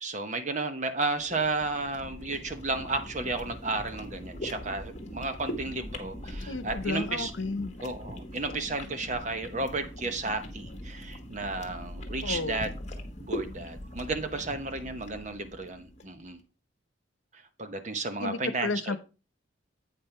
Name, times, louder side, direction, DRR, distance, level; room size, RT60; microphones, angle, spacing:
voice 1, 0.0-7.3 7.8-12.7 13.3-16.4 17.6-19.0, right 3 dB, 40° right, 1.0 m, -33 dB
sound 1, 1.0-16.2, equal, 35° left, 1.3 m, -41 dB
voice 2, 6.5-7.7 12.2-12.7 18.2-19.0, left 3 dB, 85° left, 0.8 m, -32 dB
8.5 x 5.5 x 4.4 m
head